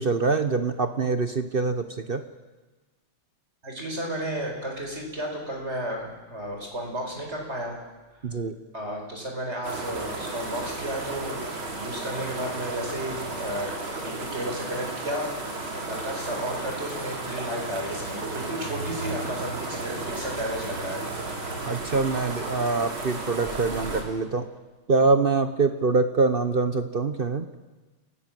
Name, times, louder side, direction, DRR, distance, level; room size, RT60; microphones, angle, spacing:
voice 1, 0.0-2.2 8.2-8.6 21.6-24.5 24.9-27.5, right 4 dB, 50° right, 9 dB, 0.6 m, -24 dB
voice 2, 3.6-7.8 8.7-11.5 11.8-21.0, right 1 dB, 30° right, 1 dB, 5.2 m, -33 dB
sound 1, 9.6-24.0, right 2 dB, 70° right, 4.2 m, -34 dB
28.0 x 18.0 x 7.6 m, 1.2 s
omnidirectional pair, 2.4 m